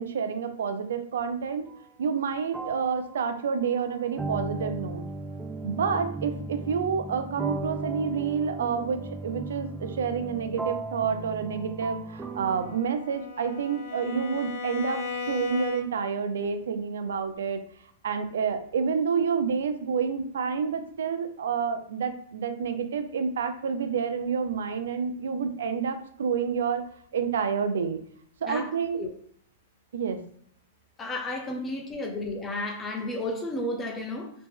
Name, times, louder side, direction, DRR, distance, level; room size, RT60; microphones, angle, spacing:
voice 1, 0.0-1.7 2.0-5.1 5.6-17.6 18.0-26.9 27.1-28.0 28.4-29.0 29.9-30.2, right 6 dB, 80° right, 0.6 m, -29 dB
sound 1, 1.7-1.9 2.5-12.8, right 2 dB, 10° right, 0.4 m, -36 dB
Bowed string instrument, 12.3-16.2, left 5 dB, 65° left, 0.5 m, -37 dB
voice 2, 31.0-34.3, left 2 dB, 15° left, 0.8 m, -32 dB
3.1 x 3.0 x 3.5 m
hypercardioid pair, 135°, 0 cm